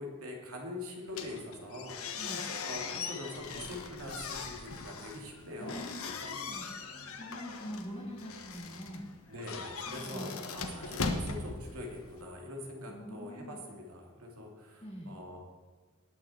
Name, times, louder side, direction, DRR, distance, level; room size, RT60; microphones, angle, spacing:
voice 1, 0.0-6.4 9.3-15.4, left 1 dB, 85° right, 0 dB, 2.7 m, -44 dB
sound 1, 1.1-12.2, left 4 dB, 75° left, 1.2 m, -40 dB
voice 2, 5.6-9.1 9.9-10.3 12.9-13.6 14.8-15.1, equal, 25° left, -5 dB, 2.1 m, -44 dB
19.0 x 6.5 x 4.4 m, 1.5 s
head